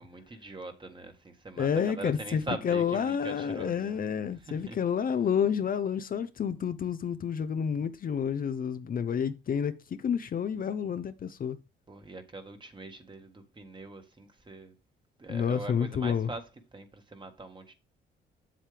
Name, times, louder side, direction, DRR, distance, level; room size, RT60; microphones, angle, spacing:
voice 1, 0.0-4.0 4.3-4.8 11.9-14.7 15.2-17.7, right 2 dB, 25° right, 1.6 m, -42 dB
voice 2, 1.6-11.6 15.3-16.3, left 7 dB, 45° left, 0.6 m, -29 dB
7.6 x 7.3 x 3.4 m
cardioid pair, 90°, 20 cm